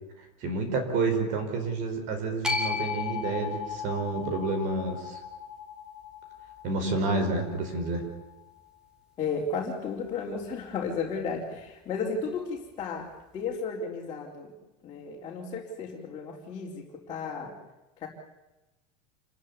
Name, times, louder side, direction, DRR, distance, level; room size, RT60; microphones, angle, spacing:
voice 1, 0.4-5.2 6.6-8.0, right 3 dB, 40° right, 7 dB, 5.0 m, -29 dB
sound 1, 2.4-8.7, left 5 dB, 5° right, 2.7 m, -36 dB
voice 2, 9.2-13.1 13.3-14.5 14.8-17.5 18.0-18.1, left 4 dB, 25° left, -4 dB, 4.0 m, -34 dB
28.5 x 15.0 x 9.8 m, 1.0 s
cardioid pair, 180°, 20 cm